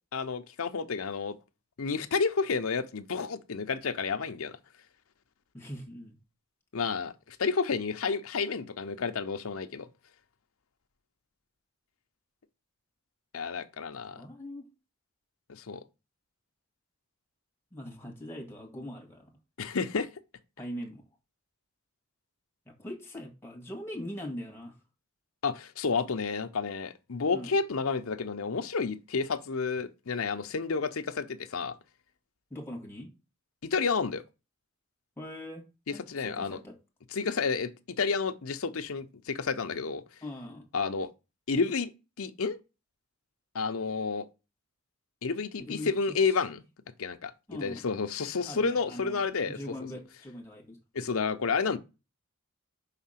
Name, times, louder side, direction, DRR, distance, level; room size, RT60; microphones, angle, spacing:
voice 1, 0.1-1.4 1.8-4.6 6.7-9.9 13.3-14.2 15.5-15.8 19.6-20.1 25.4-31.7 33.6-34.2 36.1-36.6 37.1-37.7 38.0-40.0 40.7-41.1 41.5-41.9 42.2-42.6 43.5-44.3 45.2-46.6 47.0-47.3 47.6-49.6 50.9-51.8, left 5 dB, 75° left, 0.7 m, -30 dB
voice 2, 5.5-6.2 14.2-14.7 17.7-19.3 20.6-21.0 22.7-24.7 27.3-27.5 32.5-33.1 35.2-35.7 35.9-36.8 40.2-40.7 45.6-45.9 46.2-46.3 47.5-47.8 48.4-50.8, left 1 dB, 10° left, 1.9 m, -41 dB
5.8 x 3.7 x 5.7 m
head